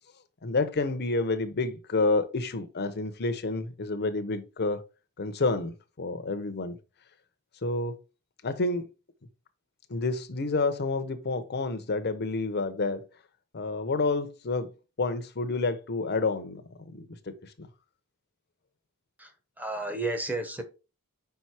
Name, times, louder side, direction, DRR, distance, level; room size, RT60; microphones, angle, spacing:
voice 1, 0.4-4.8 5.2-6.8 7.6-8.0 8.4-8.9 9.9-13.0 13.5-14.7 15.0-17.1 17.4-17.7, left 3 dB, 50° left, 0.8 m, -29 dB
voice 2, 19.2-20.6, right 2 dB, 10° right, 1.0 m, -32 dB
5.2 x 4.6 x 4.2 m
head